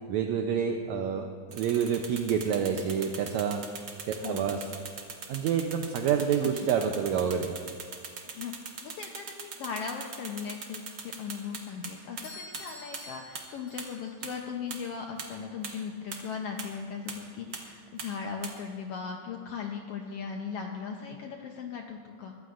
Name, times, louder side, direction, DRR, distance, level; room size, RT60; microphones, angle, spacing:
voice 1, 0.1-3.6 4.1-4.6 5.3-7.6, right 7 dB, 75° right, 4 dB, 1.8 m, -28 dB
sound 1, 1.5-11.9 12.2-12.3 12.5-12.6 12.9-13.0 13.4-13.5 13.8-13.9 14.2-14.3 14.7-14.8 15.2-15.3 15.6-15.7 16.1-16.2 16.6-16.7 17.1-17.2 17.5-17.6 18.0-18.1 18.4-18.5, right 6 dB, 50° right, 1.4 m, -39 dB
voice 2, 4.2-4.7 6.4-6.5 8.4-8.5 8.8-22.4, left 6 dB, 85° left, 2 dB, 1.3 m, -38 dB
Doorbell, 12.2-14.2, left 2 dB, 50° left, 3.4 m, -47 dB
22.0 x 14.5 x 2.5 m, 2.2 s
omnidirectional pair, 3.6 m